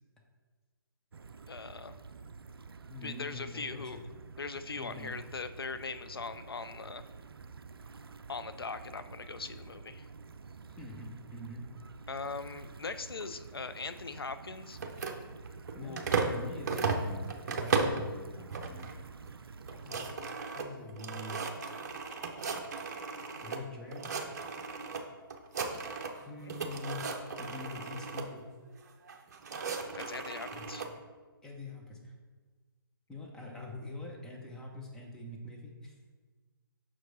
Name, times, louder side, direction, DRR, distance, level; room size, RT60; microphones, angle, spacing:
sound 1, 1.1-20.2, right 4 dB, 75° right, 0.4 m, -49 dB
voice 1, 1.5-2.0 3.0-4.0 4.4-7.0 8.3-10.1 12.1-14.8 15.8-16.0 26.4-26.6 29.9-30.9, left 4 dB, 80° left, 11 dB, 0.4 m, -40 dB
voice 2, 2.9-4.0 4.8-5.1 10.8-11.7 15.8-18.9 19.9-20.0 20.5-21.4 23.4-24.2 26.2-27.1 27.4-28.4 30.5-30.7 31.4-32.1 33.1-35.9, left 2 dB, 5° left, -1 dB, 0.7 m, -44 dB
sound 2, 14.7-16.4 16.7-18.1 18.5-19.0 19.3-19.4 19.6-23.6 23.9-25.0 25.3-26.2 26.5-28.3 29.1-30.9, right 4 dB, 45° right, 0.7 m, -35 dB
6.0 x 4.6 x 4.0 m, 1.3 s
figure-of-eight pair, 140°, 12 cm